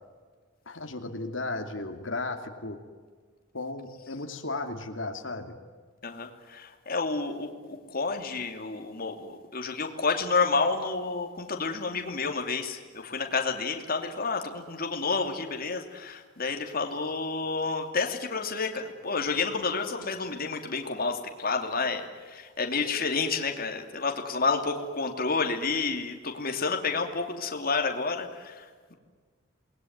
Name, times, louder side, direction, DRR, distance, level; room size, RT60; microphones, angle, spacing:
voice 1, 0.7-2.8 3.5-5.6, left 2 dB, 75° left, 4 dB, 2.7 m, -35 dB
voice 2, 6.0-28.9, left 4 dB, 50° left, 4 dB, 2.8 m, -30 dB
28.5 x 20.5 x 9.5 m, 1.5 s
head